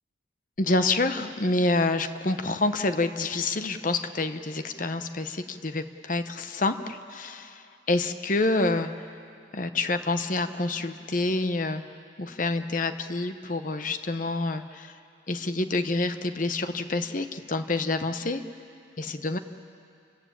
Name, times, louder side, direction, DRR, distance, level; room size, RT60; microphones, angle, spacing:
voice 1, 0.6-8.9 9.5-11.8 12.2-14.9 15.3-18.4 19.0-19.4, left 2 dB, 40° left, 9 dB, 0.9 m, -27 dB
29.5 x 14.5 x 8.7 m, 2.5 s
head